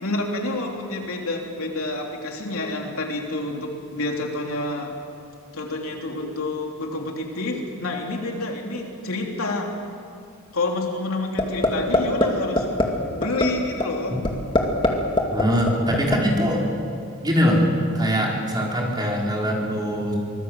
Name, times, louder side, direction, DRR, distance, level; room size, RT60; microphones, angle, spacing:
voice 1, 0.0-4.9 5.5-9.7 10.5-12.7 13.1-14.2, left 2 dB, 70° left, 1 dB, 3.3 m, -28 dB
sound 1, 11.4-11.7 11.9-12.3 12.6-12.8 13.2-13.4 13.8-13.9 14.2-14.9 15.2-16.2, left 2 dB, 20° left, 2.2 m, -18 dB
voice 2, 15.3-16.6 17.2-17.7 17.9-20.1, equal, 20° right, -3 dB, 4.5 m, -22 dB
24.5 x 19.5 x 7.8 m, 2.5 s
head